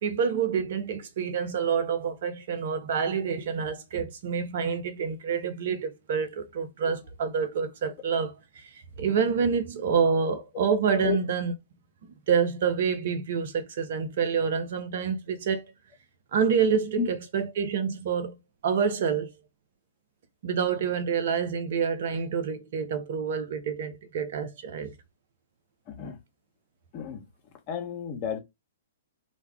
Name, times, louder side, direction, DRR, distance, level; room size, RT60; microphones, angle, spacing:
voice 1, 0.0-11.5 12.0-15.6 16.3-18.4 18.6-19.3 20.4-24.9, right 6 dB, 55° right, 0.6 m, -27 dB
voice 2, 25.9-26.2 26.9-27.2 27.7-28.4, left 8 dB, 35° left, 0.9 m, -31 dB
2.3 x 2.2 x 3.4 m
figure-of-eight pair, 115°, 0 cm